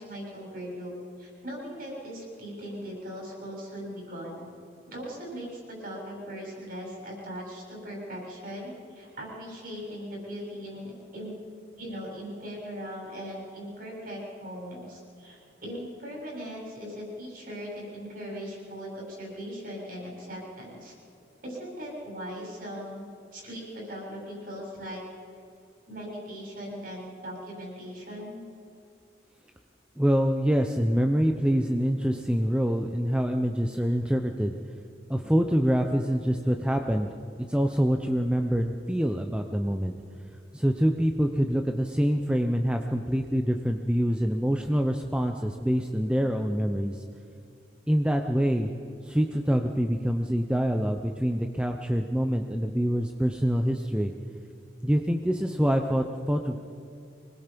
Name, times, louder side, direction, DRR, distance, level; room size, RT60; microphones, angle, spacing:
voice 1, 0.0-4.5 4.9-11.3 11.8-20.9 21.4-23.1 23.3-25.0 25.9-28.4, equal, 50° right, -2 dB, 7.2 m, -39 dB
voice 2, 30.0-34.6 35.1-37.1 37.4-39.9 40.5-47.0 47.9-48.7 49.0-54.1 54.8-56.6, equal, 5° right, 4 dB, 0.7 m, -25 dB
25.5 x 20.5 x 5.3 m, 2.6 s
head